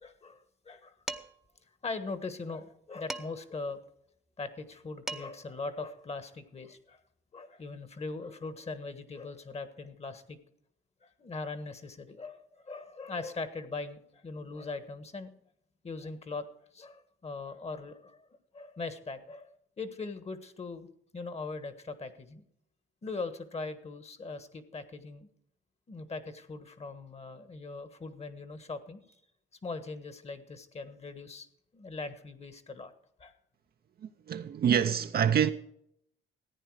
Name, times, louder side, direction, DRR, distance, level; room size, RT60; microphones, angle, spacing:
voice 1, 0.0-0.9 1.8-3.8 4.4-7.0 7.3-10.4 11.0-15.3 15.8-16.5 16.7-18.3 18.5-22.4 23.0-25.3 25.9-29.0 29.6-31.5 31.7-32.9 33.2-33.3, left 3 dB, 30° left, 1.4 m, -40 dB
Dishes pots and pans, 1.1-1.5 3.1-3.6 4.7-4.8 5.1-5.5, right 1 dB, ahead, 0.8 m, -40 dB
voice 2, 34.0-35.5, right 8 dB, 50° right, 0.6 m, -26 dB
14.5 x 9.3 x 4.8 m
cardioid pair, 90°, 20 cm